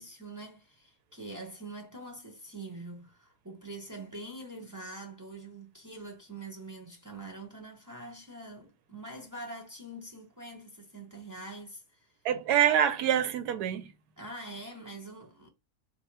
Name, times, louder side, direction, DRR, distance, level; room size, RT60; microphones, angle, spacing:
voice 1, 0.0-11.8 14.2-15.5, right 2 dB, 20° right, 0.5 m, -44 dB
voice 2, 12.2-13.9, right 10 dB, 90° right, 1.1 m, -26 dB
4.2 x 2.2 x 4.5 m
omnidirectional pair, 1.7 m